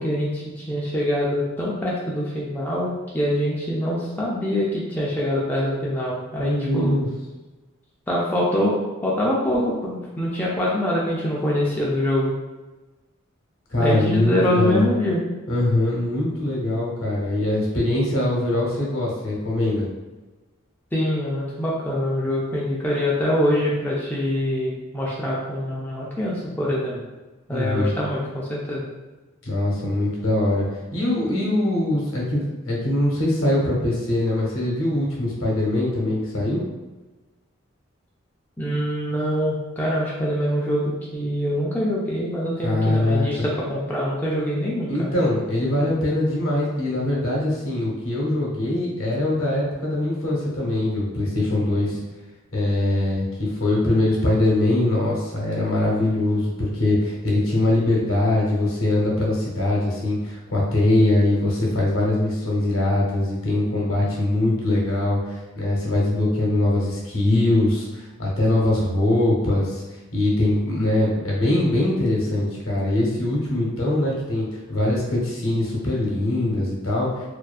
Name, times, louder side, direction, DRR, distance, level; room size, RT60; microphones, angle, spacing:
voice 1, 0.0-7.0 8.1-8.7 9.0-12.3 13.8-15.2 20.9-27.0 27.5-28.9 38.6-45.1, equal, 10° left, -6 dB, 0.3 m, -24 dB
voice 2, 6.4-7.1 13.7-14.9 15.5-19.9 27.5-27.9 29.5-36.6 42.6-43.3 44.9-52.0 52.5-69.8 70.1-77.2, left 1 dB, 80° left, -3 dB, 0.8 m, -22 dB
2.5 x 2.3 x 2.3 m, 1.2 s
head